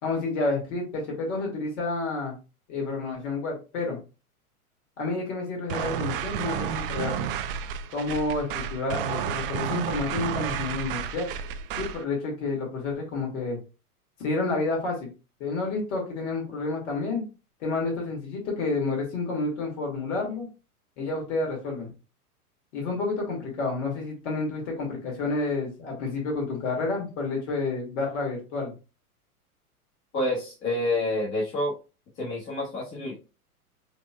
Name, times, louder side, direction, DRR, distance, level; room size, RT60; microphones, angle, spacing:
voice 1, 0.0-2.4 2.7-4.0 5.0-7.3 7.9-11.3 11.8-13.6 14.2-15.1 15.4-17.2 17.6-20.5 21.0-21.9 22.7-28.7, left 3 dB, 50° left, -1 dB, 2.2 m, -29 dB
sound 1, 5.7-12.0, right 8 dB, 40° right, 0.4 m, -31 dB
voice 2, 30.1-31.7 32.2-33.2, left 1 dB, 25° left, -5 dB, 1.6 m, -28 dB
5.1 x 2.9 x 2.3 m, 0.31 s
figure-of-eight pair, 100°, 45 cm